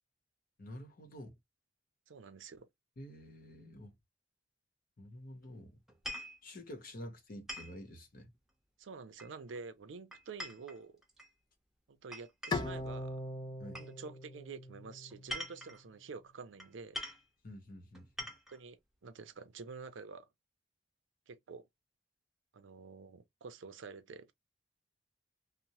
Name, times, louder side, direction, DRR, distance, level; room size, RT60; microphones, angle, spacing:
voice 1, 0.6-1.3 3.0-3.9 5.0-5.8 6.4-8.3 13.6-13.8 17.4-18.3, left 1 dB, 50° left, 0.8 m, -49 dB
voice 2, 2.1-2.7 8.8-11.0 11.9-13.2 13.7-17.0 18.5-18.8 19.0-20.3 21.3-21.7 22.5-24.3, right 4 dB, 80° right, 0.5 m, -48 dB
sound 1, 5.9-6.4 7.5-7.8 9.2-9.6 10.1-11.3 12.1-12.8 13.7-13.9 15.1-15.8 16.6-16.7 16.9-17.3 17.9-18.6, left 1 dB, ahead, 0.8 m, -44 dB
Bowed string instrument, 12.5-15.7, left 2 dB, 25° left, 0.4 m, -41 dB
2.7 x 2.0 x 2.9 m
head